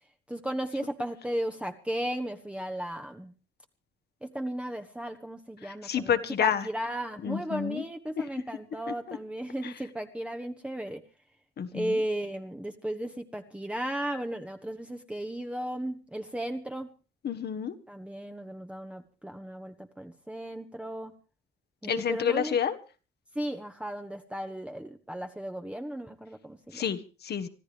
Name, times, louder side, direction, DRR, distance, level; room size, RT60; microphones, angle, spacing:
voice 1, 0.0-3.3 4.2-11.0 11.7-16.9 17.9-21.1 21.8-22.6 23.3-26.9, right 1 dB, 5° right, 4 dB, 1.0 m, -35 dB
voice 2, 5.8-6.6 7.2-7.8 9.1-9.2 9.6-9.7 11.6-12.0 17.2-17.7 21.9-22.8 26.7-27.5, left 8 dB, 55° left, 10 dB, 1.3 m, -29 dB
25.5 x 13.5 x 3.4 m, 0.34 s
cardioid pair, 90°, 20 cm